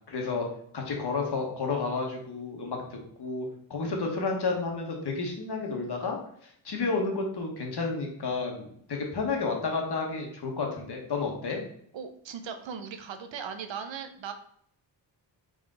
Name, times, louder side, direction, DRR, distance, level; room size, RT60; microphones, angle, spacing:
voice 1, 0.1-0.5 0.7-6.2 6.4-11.6, left 4 dB, 55° left, 1 dB, 1.4 m, -31 dB
voice 2, 11.9-14.3, right 7 dB, 70° right, 7 dB, 0.7 m, -38 dB
3.8 x 3.5 x 3.8 m, 0.65 s
supercardioid pair, 45°, 46 cm